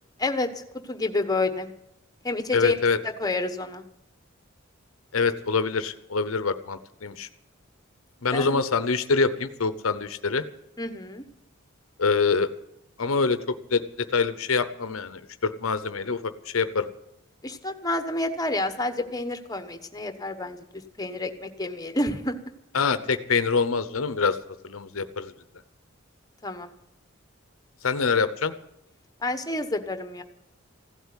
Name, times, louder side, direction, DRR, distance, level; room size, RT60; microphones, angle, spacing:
voice 1, 0.2-0.6 0.9-1.7 2.2-2.8 3.2-3.8 8.3-8.6 10.8-11.2 17.4-22.3 26.4-26.7 29.2-30.2, left 2 dB, 20° left, 8 dB, 1.2 m, -29 dB
voice 2, 2.5-3.0 5.1-7.3 8.2-10.4 12.0-12.5 13.0-13.8 14.1-16.9 22.7-24.4 24.6-25.3 27.8-28.5, left 4 dB, 90° left, 12 dB, 0.8 m, -25 dB
16.0 x 8.2 x 9.8 m, 0.82 s
head